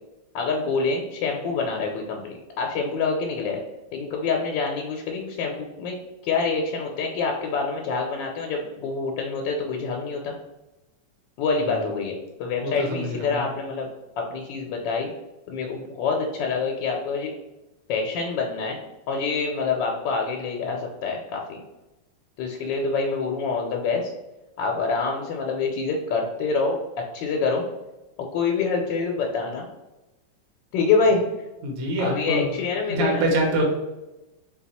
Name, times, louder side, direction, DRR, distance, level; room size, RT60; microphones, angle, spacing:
voice 1, 0.3-3.6 3.9-6.0 6.2-10.3 11.4-13.9 14.2-15.1 15.5-17.3 17.9-18.8 19.1-21.6 22.4-24.1 24.6-26.8 27.1-27.7 28.3-29.7 30.7-31.2 32.0-33.3, left 4 dB, 85° left, 1 dB, 1.3 m, -26 dB
voice 2, 12.6-13.5 31.6-32.6 32.9-33.6, right 1 dB, 60° right, 1 dB, 1.2 m, -25 dB
4.2 x 2.3 x 4.1 m, 1.0 s
omnidirectional pair, 2.0 m